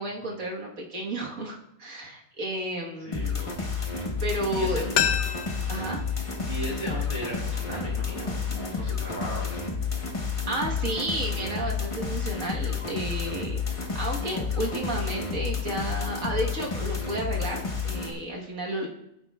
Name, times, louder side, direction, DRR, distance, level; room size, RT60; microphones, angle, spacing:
voice 1, 0.0-3.7 4.2-4.9 5.7-6.1 8.8-8.9 10.5-13.6 14.0-18.9, right 1 dB, 60° right, -1 dB, 1.7 m, -32 dB
sound 1, 3.1-18.1, left 5 dB, 25° left, 1.0 m, -30 dB
voice 2, 4.5-4.8 6.5-9.7, equal, 25° right, -5 dB, 3.7 m, -36 dB
sound 2, 4.9-7.7 8.0-8.1, left 9 dB, 60° left, 0.9 m, -31 dB
15.5 x 9.0 x 2.3 m, 0.82 s
omnidirectional pair, 1.6 m